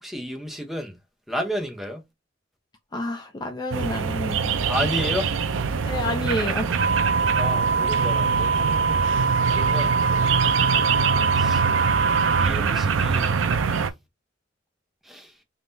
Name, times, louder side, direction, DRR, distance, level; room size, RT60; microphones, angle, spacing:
voice 1, 0.0-1.0 1.3-2.0 4.7-5.3 7.4-8.5 9.5-9.9 11.3-11.7 12.4-13.3 13.7-13.9 15.0-15.3, equal, ahead, 0.8 m, -31 dB
voice 2, 2.9-4.9 5.8-6.7, left 1 dB, 20° left, 0.4 m, -30 dB
sound 1, 3.7-13.9, right 5 dB, 75° right, 0.5 m, -24 dB
sound 2, 6.8-12.5, right 5 dB, 40° right, 0.7 m, -23 dB
3.6 x 2.8 x 2.6 m
head